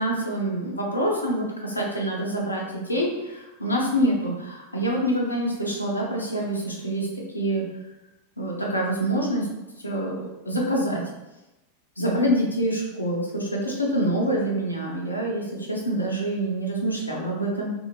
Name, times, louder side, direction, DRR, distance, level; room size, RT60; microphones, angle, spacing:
voice 1, 0.0-7.1 7.3-7.6 8.4-9.5 9.8-11.0 12.0-17.7, right 1 dB, 80° left, -2 dB, 0.5 m, -26 dB
2.7 x 2.7 x 2.7 m, 0.99 s
figure-of-eight pair, 90°, 0 cm